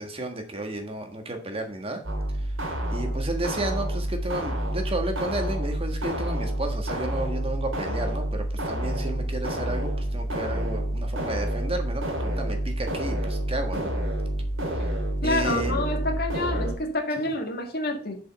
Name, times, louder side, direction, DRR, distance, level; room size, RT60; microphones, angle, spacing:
voice 1, 0.0-2.0 2.4-2.5 2.9-13.9 14.7-14.9 15.2-15.8 17.2-17.3, right 2 dB, 30° right, 5 dB, 1.5 m, -32 dB
sound 1, 2.0-16.7, right 1 dB, 75° right, 2.5 m, -28 dB
voice 2, 15.2-18.2, left 2 dB, 50° left, 3 dB, 1.8 m, -28 dB
7.2 x 5.5 x 5.4 m, 0.42 s
head